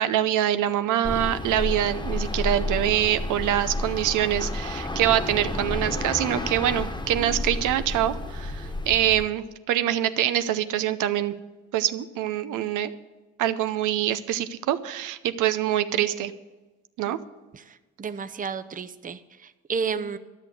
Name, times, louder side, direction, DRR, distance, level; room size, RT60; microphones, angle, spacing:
voice 1, 0.0-11.3 11.7-12.9 13.4-16.3 17.0-17.2, right 11 dB, 85° right, 11 dB, 0.7 m, -25 dB
sound 1, 1.0-9.2, left 2 dB, 15° left, 1.3 m, -31 dB
voice 2, 17.5-20.2, right 5 dB, 25° right, 11 dB, 0.7 m, -32 dB
12.5 x 6.5 x 9.1 m, 1.2 s
cardioid pair, 90°, 30 cm